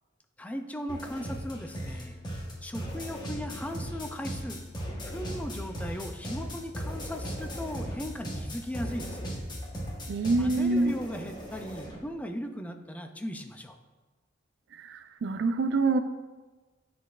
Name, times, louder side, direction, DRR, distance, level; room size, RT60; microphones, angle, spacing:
voice 1, 0.4-2.2 2.6-4.6 5.1-9.2 10.4-13.8, equal, 10° left, 5 dB, 0.3 m, -37 dB
sound 1, 0.9-12.0, equal, 25° left, 1.1 m, -37 dB
voice 2, 10.1-10.9 14.8-16.0, right 3 dB, 65° right, 10 dB, 0.4 m, -26 dB
10.0 x 4.1 x 2.4 m, 1.3 s
head